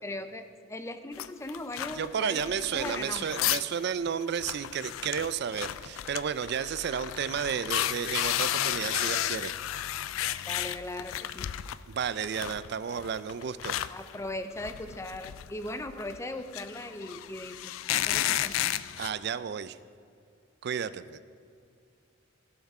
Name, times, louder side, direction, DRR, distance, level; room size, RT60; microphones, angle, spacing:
voice 1, 0.0-3.4 10.5-11.5 13.9-18.7, left 1 dB, 15° left, 9 dB, 0.5 m, -39 dB
sound 1, 1.2-3.8 4.1-4.2 4.4-11.8 12.2-19.1, left 12 dB, 90° left, 0.3 m, -33 dB
voice 2, 1.9-9.5 11.9-13.8 19.0-19.8 20.6-21.2, right 7 dB, 55° right, 14 dB, 0.4 m, -32 dB
15.5 x 5.9 x 4.3 m, 2.4 s
head